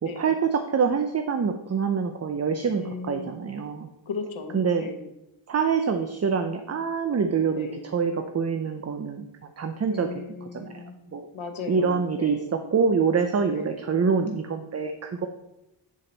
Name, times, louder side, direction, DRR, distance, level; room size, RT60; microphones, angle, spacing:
voice 1, 0.0-3.9 4.5-4.9 5.5-9.3 9.6-11.3 11.7-15.3, right 5 dB, 35° right, 7 dB, 0.5 m, -26 dB
voice 2, 2.7-3.4 4.1-5.1 7.5-7.9 9.9-10.9 11.3-12.5 13.5-13.8, left 5 dB, 80° left, 5 dB, 1.0 m, -37 dB
8.5 x 3.9 x 4.3 m, 0.91 s
wide cardioid pair, 80°, 47 cm